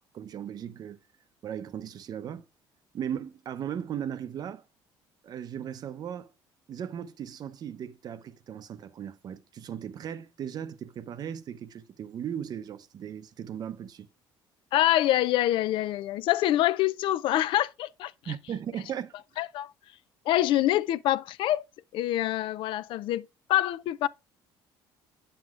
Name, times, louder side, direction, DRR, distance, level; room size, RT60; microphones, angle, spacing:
voice 1, 0.1-1.0 1.4-2.4 2.9-4.6 5.2-6.3 6.7-14.1 18.3-19.1, right 9 dB, 45° right, 0.7 m, -37 dB
voice 2, 14.7-18.3 19.4-19.7 20.3-21.6 21.9-24.1, left 14 dB, 65° left, 0.4 m, -26 dB
8.4 x 7.8 x 2.4 m
cardioid pair, 120°, 9 cm